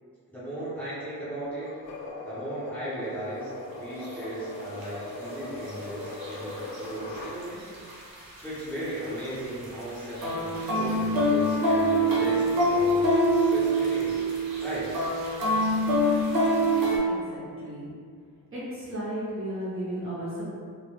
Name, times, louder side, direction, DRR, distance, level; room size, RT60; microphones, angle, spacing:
voice 1, 0.3-1.7 2.2-7.7 8.4-14.1 14.6-14.9, right 1 dB, 5° left, -12 dB, 0.6 m, -36 dB
sound 1, 1.6-7.4, left 2 dB, 65° left, 0.5 m, -40 dB
sound 2, 4.0-4.1 4.8-4.9 5.7-6.9 7.1-7.4 7.7-9.3 9.6-17.0, right 1 dB, 75° right, 0.7 m, -24 dB
voice 2, 17.1-17.9 18.5-20.4, right 1 dB, 40° right, -9 dB, 0.5 m, -34 dB
2.1 x 2.0 x 2.9 m, 2.1 s
wide cardioid pair, 160°, 36 cm